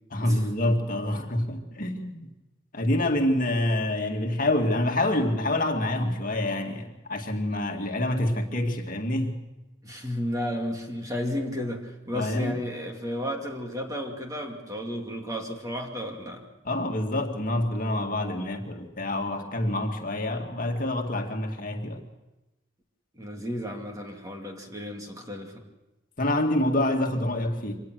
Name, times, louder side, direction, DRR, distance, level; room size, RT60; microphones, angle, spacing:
voice 1, 0.1-2.2 2.7-9.3 12.1-12.6 16.6-22.0 26.2-27.8, left 1 dB, 45° left, 3 dB, 2.2 m, -27 dB
voice 2, 9.8-16.4 23.1-25.6, equal, 20° right, 2 dB, 2.5 m, -33 dB
25.0 x 19.0 x 6.4 m, 1.0 s
head